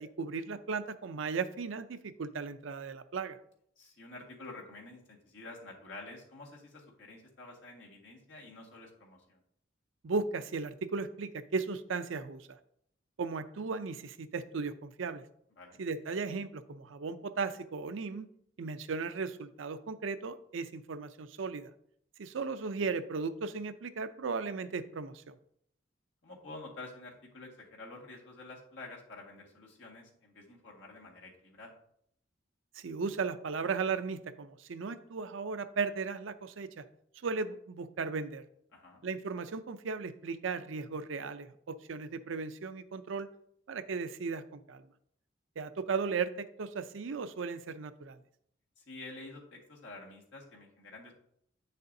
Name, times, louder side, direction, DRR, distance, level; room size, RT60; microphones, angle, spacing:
voice 1, 0.0-3.4 10.0-12.6 13.2-15.2 15.8-18.3 18.6-21.7 22.2-25.3 32.7-36.8 37.2-38.4 39.0-43.3 43.7-44.8 45.6-48.2, right 4 dB, 75° right, 11 dB, 0.5 m, -36 dB
voice 2, 3.8-9.4 15.6-15.8 26.2-31.7 38.7-39.0 48.8-51.1, left 2 dB, 65° left, -2 dB, 1.7 m, -49 dB
8.5 x 6.6 x 2.7 m, 0.68 s
head